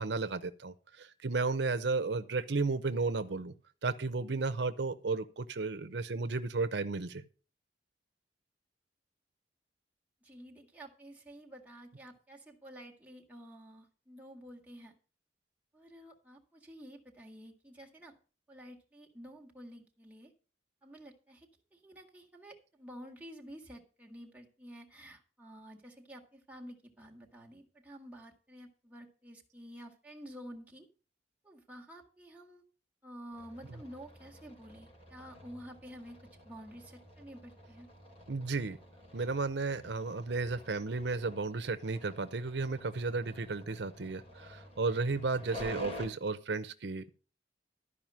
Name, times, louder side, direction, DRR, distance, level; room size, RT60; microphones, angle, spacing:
voice 1, 0.0-3.5 3.8-7.2 33.7-33.8 38.3-38.8 39.1-47.1, right 3 dB, 75° right, 11 dB, 0.7 m, -33 dB
voice 2, 10.2-14.9 15.7-18.1 18.5-20.3 20.8-30.9 31.4-32.6 33.0-36.2 36.4-37.9, equal, 10° right, 0 dB, 1.8 m, -50 dB
sound 1, 33.3-46.1, left 1 dB, 35° left, 3.2 m, -50 dB
12.5 x 5.0 x 7.4 m, 0.37 s
head